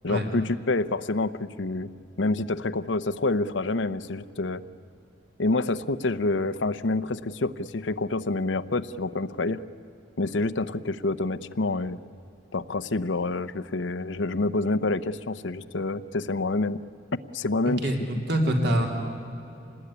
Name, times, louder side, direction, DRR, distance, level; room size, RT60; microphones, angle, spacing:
voice 1, 0.0-1.9 2.2-4.6 5.4-9.6 10.2-12.0 12.5-16.8 17.3-17.8, left 2 dB, 75° left, 14 dB, 0.8 m, -27 dB
voice 2, 17.6-18.9, right 1 dB, 60° right, 2 dB, 3.2 m, -25 dB
27.5 x 20.0 x 9.9 m, 2.8 s
head